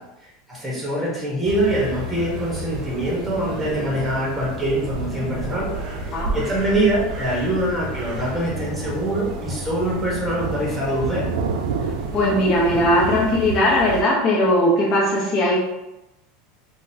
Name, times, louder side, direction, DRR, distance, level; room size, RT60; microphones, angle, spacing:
voice 1, 0.5-5.7 6.0-11.3, right 1 dB, 5° right, -5 dB, 1.1 m, -24 dB
sound 1, 1.4-14.0, right 1 dB, 45° right, 0.7 m, -31 dB
Thunder, 8.4-13.6, right 5 dB, 90° right, 0.3 m, -31 dB
voice 2, 12.1-15.6, left 1 dB, 35° left, -4 dB, 0.9 m, -19 dB
3.8 x 2.3 x 2.8 m, 0.94 s
supercardioid pair, 145°, 0 cm